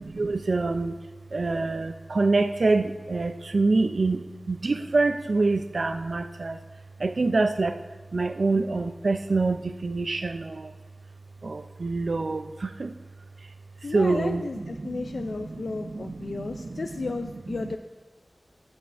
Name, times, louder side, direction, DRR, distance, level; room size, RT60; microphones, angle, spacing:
voice 1, 0.2-0.9 1.3-1.9 2.1-2.8 3.1-4.2 4.6-6.5 7.0-7.7 8.1-9.6 9.8-10.3 11.8-12.4 13.9-14.4, right 3 dB, 70° right, 9 dB, 0.3 m, -24 dB
voice 2, 13.8-17.8, left 3 dB, 85° left, 5 dB, 0.3 m, -33 dB
15.0 x 6.9 x 2.5 m, 1.2 s
wide cardioid pair, 75°, 0 cm